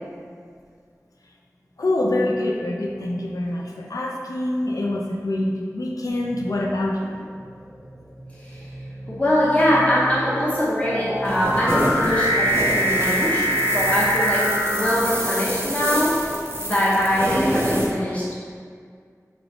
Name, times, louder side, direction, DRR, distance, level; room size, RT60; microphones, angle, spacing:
voice 1, 1.8-7.2 17.7-18.1, left 1 dB, 75° left, -1 dB, 0.4 m, -25 dB
sound 1, 6.2-6.6 7.4-15.6, equal, 60° left, 1.1 m, -25 dB
voice 2, 9.1-14.4 14.7-16.1 16.6-18.2, equal, 20° left, -8 dB, 0.7 m, -22 dB
sound 2, 11.2-17.9, equal, 40° right, 0.5 m, -27 dB
3.1 x 3.0 x 2.7 m, 2.1 s
wide cardioid pair, 40°, 6 cm